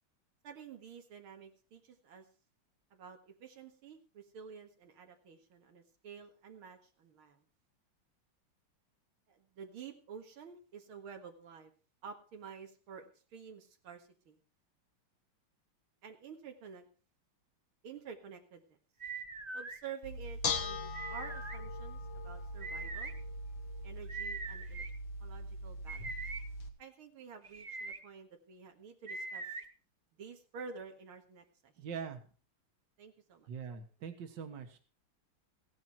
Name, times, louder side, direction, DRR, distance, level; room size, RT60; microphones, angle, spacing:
voice 1, 0.4-2.3 2.9-7.4 9.3-11.7 12.0-14.4 16.0-16.9 17.8-18.8 19.5-23.1 23.8-24.8 25.2-26.1 26.8-29.4 30.2-31.7 33.0-33.5, right 6 dB, 90° right, 4 dB, 2.5 m, -50 dB
sound 1, 19.0-19.8 20.9-21.6 22.6-23.1 24.1-24.9 25.9-26.4 27.4-28.0 29.1-29.6, right 4 dB, 30° right, 0.8 m, -42 dB
Bell / Dishes pots and pans, 20.0-26.7, left 3 dB, 70° left, 2.2 m, -40 dB
voice 2, 31.8-32.2 33.5-34.8, right 6 dB, 60° right, 6 dB, 2.1 m, -42 dB
16.5 x 10.5 x 4.4 m, 0.38 s
omnidirectional pair, 2.3 m